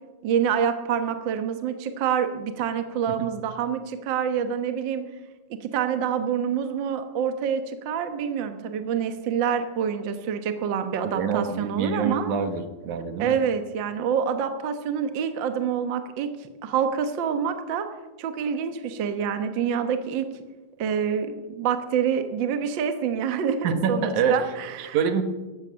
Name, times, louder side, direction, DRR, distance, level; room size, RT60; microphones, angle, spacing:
voice 1, 0.2-5.1 5.6-12.3 13.2-16.3 16.6-17.9 18.2-20.3 20.8-25.0, right 7 dB, 50° right, 8 dB, 1.5 m, -27 dB
voice 2, 11.1-13.4 23.6-24.4 24.9-25.2, right 6 dB, 80° right, 9 dB, 2.7 m, -25 dB
15.5 x 13.0 x 6.4 m, 1.2 s
omnidirectional pair, 3.4 m